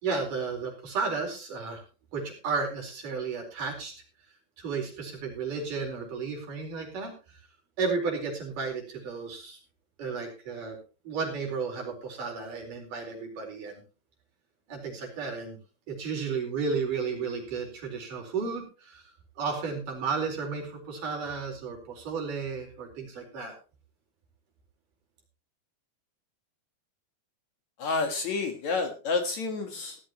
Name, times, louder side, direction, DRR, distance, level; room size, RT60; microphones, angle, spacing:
voice 1, 0.0-1.8 2.1-3.9 4.6-7.4 7.8-9.6 10.0-10.8 11.1-13.8 14.7-15.6 15.9-23.5, right 5 dB, 60° right, 2 dB, 5.9 m, -33 dB
voice 2, 27.8-30.0, left 4 dB, 55° left, 5 dB, 2.5 m, -29 dB
17.0 x 13.0 x 3.0 m, 0.34 s
omnidirectional pair, 4.3 m